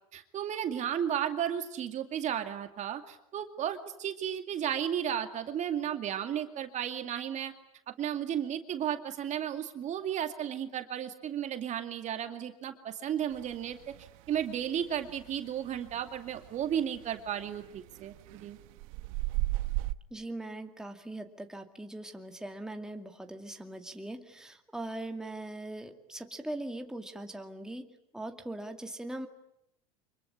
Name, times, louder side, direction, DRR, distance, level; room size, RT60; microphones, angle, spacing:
voice 1, 0.1-7.5 7.9-13.9 14.3-18.6, right 9 dB, 40° right, 7 dB, 2.4 m, -34 dB
sound 1, 13.3-15.4 15.7-19.9, right 19 dB, 70° right, 1.0 m, -35 dB
voice 2, 20.1-29.3, right 1 dB, 5° right, 4 dB, 2.3 m, -41 dB
25.0 x 23.0 x 10.0 m, 0.77 s
supercardioid pair, 105°, 18 cm